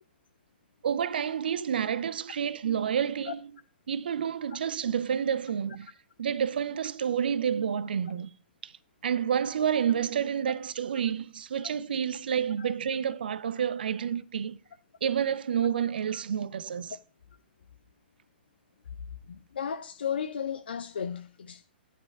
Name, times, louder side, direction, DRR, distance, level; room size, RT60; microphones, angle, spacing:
voice 1, 0.8-3.5 3.9-5.9 6.2-8.3 8.6-8.7 9.0-14.6 15.0-17.0, right 8 dB, 60° right, 0.7 m, -29 dB
voice 2, 19.3-21.6, left 7 dB, 65° left, 0.6 m, -34 dB
11.0 x 5.5 x 4.7 m
figure-of-eight pair, 115°, 6 cm